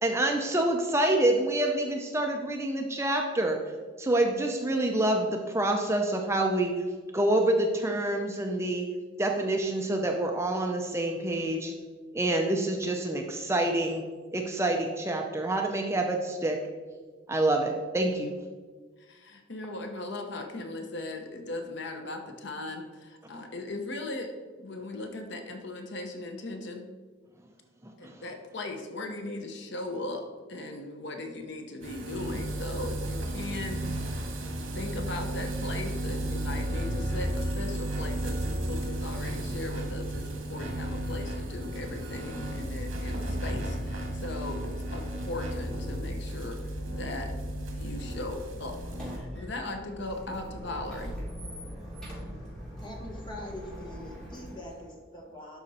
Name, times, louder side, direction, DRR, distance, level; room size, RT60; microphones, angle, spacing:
voice 1, 0.0-3.6 4.0-6.7 7.1-8.9 9.2-11.7 12.1-14.0 14.3-16.6 17.3-18.3 27.8-28.1, right 1 dB, 15° right, 2 dB, 0.5 m, -27 dB
voice 2, 19.0-26.9 28.0-34.3 34.7-46.6 46.9-47.3 47.8-51.1, left 2 dB, 60° left, 5 dB, 0.9 m, -38 dB
sound 1, 31.8-49.2, right 1 dB, 70° right, 1.8 m, -33 dB
Squeak, 48.5-54.9, equal, 5° left, 2.9 m, -41 dB
voice 3, 52.8-55.6, left 1 dB, 25° left, 0 dB, 1.5 m, -43 dB
11.5 x 5.1 x 4.2 m, 1.5 s
head